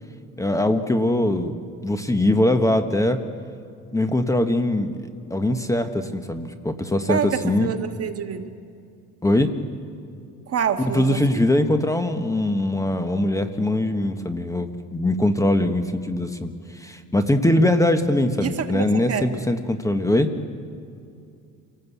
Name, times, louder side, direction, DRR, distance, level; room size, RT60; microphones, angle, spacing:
voice 1, 0.4-1.5 1.8-3.2 3.9-7.7 9.2-9.5 10.9-20.3, left 1 dB, 10° left, 8 dB, 1.2 m, -22 dB
voice 2, 7.1-8.5 10.5-11.4 18.4-19.3, right 8 dB, 45° right, 6 dB, 1.6 m, -27 dB
27.5 x 18.5 x 8.3 m, 2.4 s
cardioid pair, 125°, 33 cm